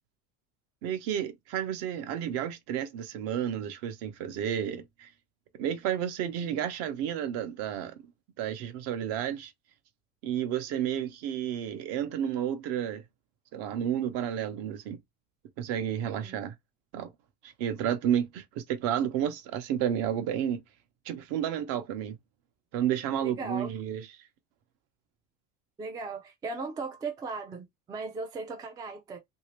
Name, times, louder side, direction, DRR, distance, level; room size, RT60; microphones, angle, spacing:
voice 1, 0.8-5.1 5.6-8.0 8.4-9.5 10.2-13.0 13.5-15.0 15.6-16.5 16.9-17.1 17.4-20.6 21.0-22.2 22.7-24.1, right 10 dB, 55° right, 0.8 m, -31 dB
voice 2, 16.1-16.4 23.2-23.7 25.8-29.2, right 3 dB, 15° right, 0.4 m, -37 dB
3.2 x 2.7 x 3.1 m
cardioid pair, 175°, 29 cm